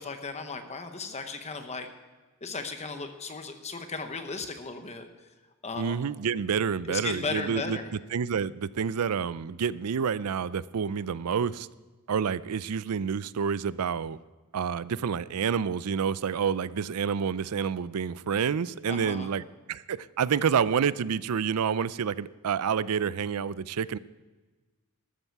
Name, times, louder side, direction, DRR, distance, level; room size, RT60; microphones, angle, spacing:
voice 1, 0.0-1.9 2.4-5.1 5.6-6.0 6.9-7.9 18.9-19.3, left 4 dB, 30° left, 7 dB, 1.0 m, -36 dB
voice 2, 5.8-7.8 8.1-11.7 12.1-14.2 14.5-19.4 19.7-24.0, right 7 dB, 85° right, 18 dB, 0.5 m, -28 dB
13.5 x 13.0 x 4.7 m, 1.3 s
head